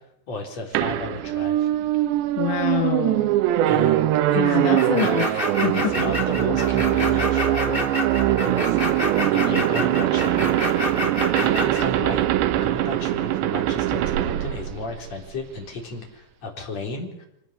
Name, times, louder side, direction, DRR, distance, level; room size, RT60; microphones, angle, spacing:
voice 1, 0.3-1.7 3.7-4.9 5.7-8.8 9.3-10.6 11.4-12.3 12.6-17.3, left 2 dB, 35° left, 0 dB, 4.8 m, -34 dB
sound 1, 0.8-15.5, right 13 dB, 75° right, 3.2 m, -22 dB
voice 2, 2.4-3.3 4.4-5.9, left 10 dB, 60° left, 5 dB, 2.3 m, -26 dB
sound 2, 4.8-11.9, left 2 dB, 15° left, 2.7 m, -28 dB
25.0 x 20.0 x 6.8 m, 0.80 s
omnidirectional pair, 5.2 m